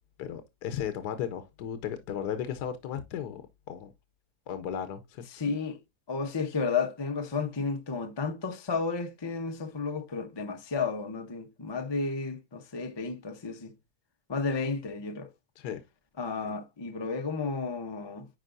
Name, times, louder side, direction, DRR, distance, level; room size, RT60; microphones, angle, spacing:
voice 1, 0.2-3.9 4.5-5.2 15.6-15.8 16.4-16.5, left 9 dB, 80° left, 1.3 m, -35 dB
voice 2, 5.3-5.8 6.1-13.7 14.3-15.3 16.2-18.3, left 4 dB, 35° left, 0.4 m, -32 dB
9.9 x 4.9 x 2.6 m
omnidirectional pair, 1.8 m